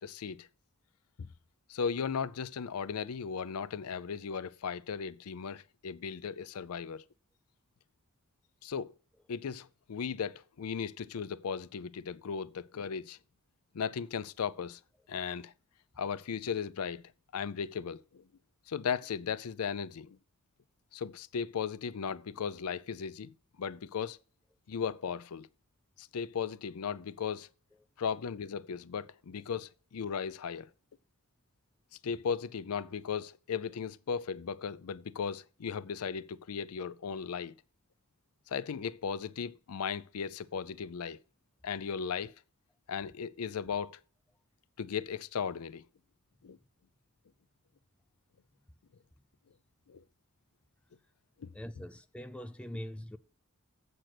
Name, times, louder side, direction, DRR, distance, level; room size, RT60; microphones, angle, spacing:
voice 1, 0.0-0.5 1.2-1.3 1.7-7.0 8.6-8.9 9.3-13.2 13.7-14.8 15.1-15.5 16.0-18.2 18.7-20.2 20.9-24.2 24.7-25.5 26.0-27.5 28.0-30.7 32.0-37.5 38.5-41.2 41.6-42.3 42.9-44.0 44.8-45.9 46.4-46.6 49.9-50.0 51.4-51.5, left 6 dB, 90° left, 0.5 m, -36 dB
voice 2, 51.5-53.2, equal, 5° left, 0.4 m, -42 dB
7.8 x 6.7 x 5.9 m
head